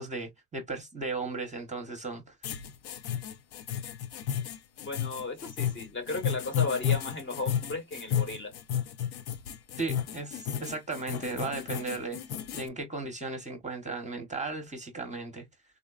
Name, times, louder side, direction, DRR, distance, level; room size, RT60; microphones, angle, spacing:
voice 1, 0.0-2.4 9.8-12.2 12.5-15.5, right 3 dB, 15° right, 0.7 m, -36 dB
sound 1, 2.4-12.7, left 9 dB, 65° left, 0.6 m, -32 dB
voice 2, 4.8-8.5, left 3 dB, 30° left, 0.8 m, -35 dB
3.7 x 2.2 x 2.2 m
cardioid pair, 140°, 42 cm